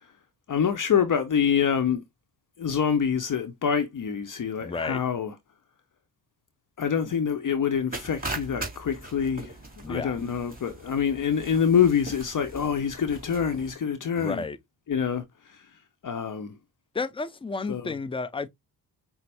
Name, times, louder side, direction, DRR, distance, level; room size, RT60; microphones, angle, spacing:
voice 1, 0.5-2.0 2.6-5.3 6.8-9.5 9.9-14.4 14.9-15.2 15.5-15.6 16.0-16.5 17.7-17.9, left 7 dB, 45° left, 0.8 m, -26 dB
voice 2, 4.6-5.0 9.8-10.2 14.2-14.6 16.9-18.5, left 4 dB, 10° left, 0.6 m, -32 dB
sound 1, 7.9-13.7, right 2 dB, 20° right, 2.2 m, -40 dB
5.8 x 2.1 x 3.3 m
supercardioid pair, 50°, 44 cm